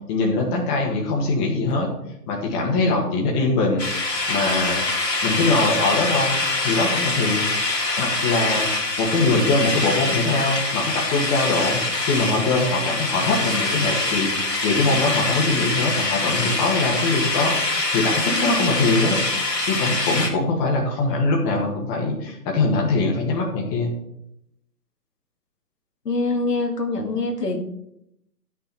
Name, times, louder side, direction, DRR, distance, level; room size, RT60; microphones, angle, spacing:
voice 1, 0.1-1.9 2.3-3.9 4.3-4.8 5.2-7.5 8.0-8.7 9.0-19.2 19.7-23.9, left 3 dB, 20° left, -1 dB, 1.7 m, -22 dB
sound 1, 3.8-20.3, left 2 dB, 90° left, 2.3 m, -24 dB
voice 2, 26.1-27.6, left 3 dB, 75° left, 3 dB, 1.9 m, -24 dB
11.5 x 6.2 x 4.3 m, 0.79 s
figure-of-eight pair, 135°, 48 cm